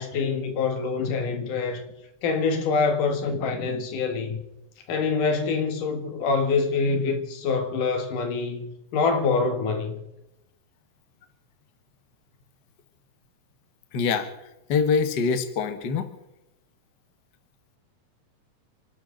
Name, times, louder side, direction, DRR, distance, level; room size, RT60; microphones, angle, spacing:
voice 1, 0.0-1.8 2.2-4.4 4.9-10.0, left 4 dB, 85° left, 3.3 m, -25 dB
voice 2, 13.9-14.3 14.7-16.1, left 5 dB, 45° left, 1.6 m, -24 dB
29.5 x 12.5 x 3.9 m
omnidirectional pair, 3.6 m